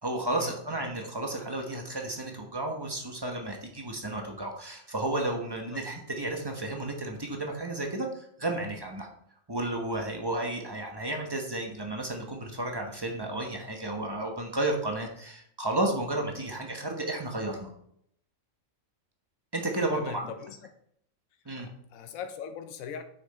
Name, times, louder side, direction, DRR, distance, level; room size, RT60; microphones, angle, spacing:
voice 1, 0.0-9.1 9.5-17.7 19.5-20.2 21.4-21.7, right 2 dB, 20° right, 2 dB, 1.1 m, -32 dB
voice 2, 19.9-20.6 21.6-23.0, left 7 dB, 80° left, 7 dB, 1.2 m, -40 dB
6.9 x 5.9 x 4.3 m, 0.70 s
omnidirectional pair, 1.4 m